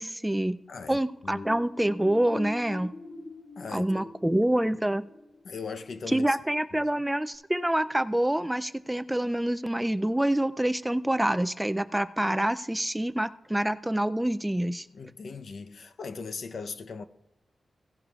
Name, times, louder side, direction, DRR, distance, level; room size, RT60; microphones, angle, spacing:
voice 1, 0.0-0.6 0.9-2.9 3.7-5.1 6.1-14.9, right 1 dB, 10° right, 0.3 m, -26 dB
voice 2, 0.7-1.5 3.6-4.0 5.4-6.4 14.9-17.0, left 5 dB, 60° left, 0.6 m, -39 dB
sound 1, 0.7-7.0 7.3-7.4, left 2 dB, 35° left, 3.3 m, -44 dB
16.5 x 10.5 x 2.3 m
wide cardioid pair, 115°, 0 cm